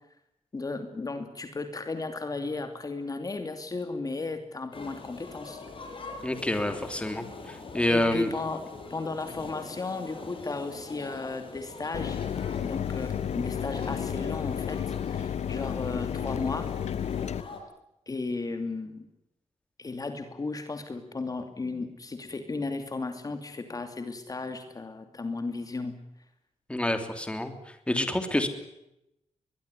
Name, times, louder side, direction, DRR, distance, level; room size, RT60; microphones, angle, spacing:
voice 1, 0.5-5.6 7.9-12.2 12.6-16.7 18.1-19.1 19.8-26.0, left 3 dB, 30° left, 8 dB, 2.7 m, -35 dB
sound 1, 4.7-17.6, left 3 dB, 50° left, 6.0 m, -43 dB
voice 2, 6.2-8.3 26.7-28.5, left 1 dB, 10° left, 8 dB, 3.1 m, -28 dB
Mechanisms, 11.9-17.4, left 8 dB, 70° left, 1.0 m, -32 dB
22.5 x 22.5 x 9.7 m, 0.85 s
wide cardioid pair, 135°, 12 cm